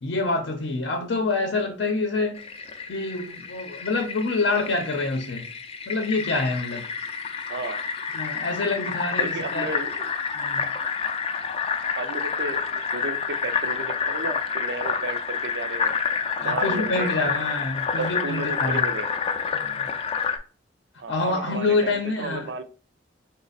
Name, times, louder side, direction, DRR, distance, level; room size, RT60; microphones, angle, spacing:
voice 1, 0.0-2.4 2.9-5.5 5.9-6.9 8.1-9.7 10.3-10.7 16.4-18.8 19.5-19.9 21.1-22.5, left 3 dB, 75° left, 0.6 m, -26 dB
Fill (with liquid), 2.4-20.4, left 6 dB, 30° left, 0.4 m, -29 dB
voice 2, 7.5-7.8 9.2-10.1 12.0-16.0 16.4-17.5 18.0-19.1 21.0-22.6, right 3 dB, 65° right, 0.5 m, -33 dB
5.0 x 2.0 x 4.0 m
head